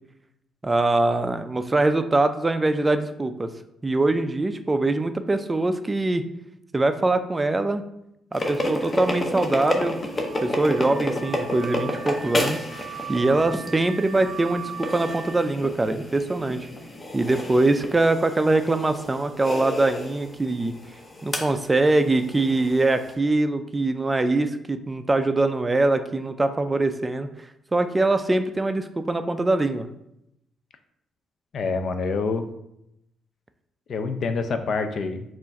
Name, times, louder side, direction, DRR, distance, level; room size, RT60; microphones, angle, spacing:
voice 1, 0.6-3.5 3.8-6.2 6.7-7.8 8.3-10.0 10.4-12.6 13.1-16.7 17.1-20.7 21.2-27.3 27.7-29.9, right 2 dB, 20° right, 9 dB, 0.3 m, -23 dB
sound 1, 8.3-23.1, left 1 dB, 25° left, 0.7 m, -31 dB
Car / Alarm, 10.0-15.5, right 7 dB, 65° right, 0.6 m, -39 dB
voice 2, 31.5-32.5 33.9-35.2, left 4 dB, 55° left, 8 dB, 0.4 m, -26 dB
4.5 x 2.5 x 4.1 m, 0.80 s
cardioid pair, 90°, 0 cm